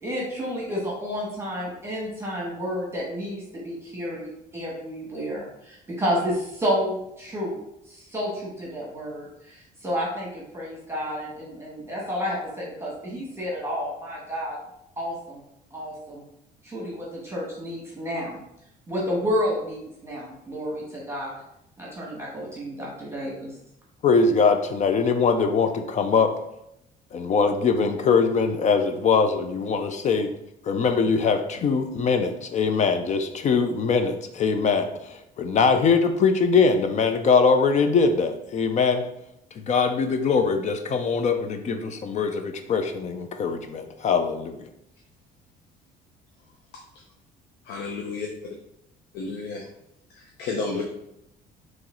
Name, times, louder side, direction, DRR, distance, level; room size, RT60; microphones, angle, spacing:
voice 1, 0.0-7.6 7.9-14.6 15.0-15.4 15.7-16.2 16.6-18.4 18.9-21.4 21.8-23.5, equal, 15° right, -4 dB, 1.5 m, -30 dB
voice 2, 24.0-26.3 27.1-30.3 30.6-39.1 39.6-44.7, left 5 dB, 45° left, 7 dB, 0.5 m, -22 dB
voice 3, 46.4-46.8 47.6-48.3 49.1-49.7 50.1-50.8, left 4 dB, 80° left, 0 dB, 0.7 m, -32 dB
4.5 x 3.1 x 3.8 m, 0.80 s
cardioid pair, 110°, 17 cm